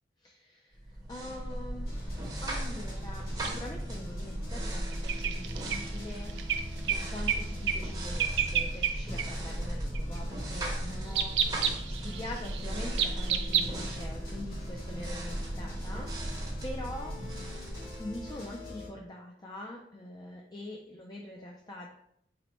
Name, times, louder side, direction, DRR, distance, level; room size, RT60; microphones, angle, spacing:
voice 1, 0.2-17.2 18.0-21.9, left 1 dB, 25° left, -1 dB, 0.3 m, -44 dB
sound 1, 0.8-18.6, right 1 dB, 20° right, 0.7 m, -37 dB
sound 2, 1.9-18.9, equal, 55° left, 1.4 m, -46 dB
sound 3, 3.4-3.5 4.9-7.4 7.7-7.9 8.2-8.9 9.2-9.3 9.9-10.2 11.1-13.9, right 8 dB, 85° right, 0.4 m, -30 dB
4.1 x 2.1 x 4.1 m, 0.73 s
head